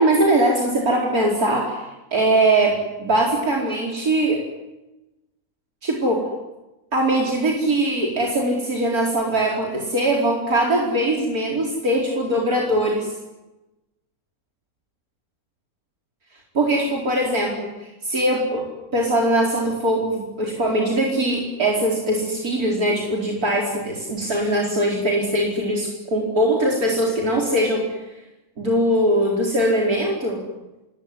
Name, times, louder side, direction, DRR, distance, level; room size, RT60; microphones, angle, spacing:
voice 1, 0.0-1.8 2.1-4.4 5.8-6.2 6.9-13.1 16.5-18.6 18.9-27.8 28.6-30.4, right 1 dB, 80° right, -2 dB, 5.0 m, -21 dB
27.0 x 22.0 x 9.9 m, 1.0 s
omnidirectional pair, 1.6 m